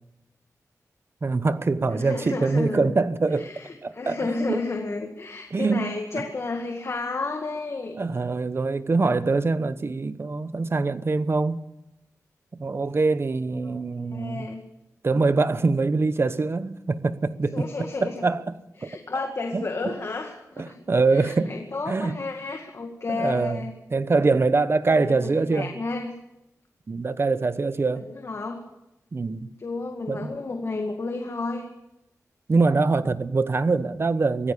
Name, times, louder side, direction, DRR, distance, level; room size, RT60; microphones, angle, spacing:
voice 1, 1.2-3.5 3.8-4.6 5.5-6.3 8.0-11.6 12.6-14.5 15.0-18.5 18.8-18.9 19.5-19.9 20.6-21.5 21.9-22.2 23.1-25.7 26.9-28.1 29.1-29.5 30.1-30.3 32.5-34.5, right 3 dB, 45° right, 1.0 m, -24 dB
voice 2, 1.9-2.9 3.3-8.0 13.6-13.8 14.1-14.6 17.5-18.2 18.8-20.8 21.1-23.7 24.9-26.1 28.0-28.6 29.6-31.6, left 3 dB, 50° left, 2.1 m, -32 dB
24.0 x 16.0 x 6.9 m
wide cardioid pair, 125°, 6 cm